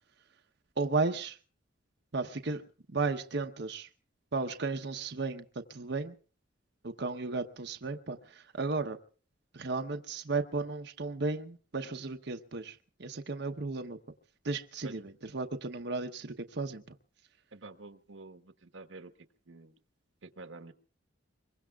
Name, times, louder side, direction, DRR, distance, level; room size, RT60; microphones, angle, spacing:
voice 1, 0.8-1.4 2.1-2.6 2.9-3.9 4.3-6.1 6.8-9.0 9.5-14.0 14.4-15.0 15.3-16.8, right 3 dB, 60° right, 5 dB, 0.9 m, -34 dB
voice 2, 17.5-19.1 19.5-19.7 20.2-20.7, right 3 dB, 80° right, 9 dB, 1.2 m, -48 dB
25.0 x 22.5 x 2.4 m, 0.41 s
head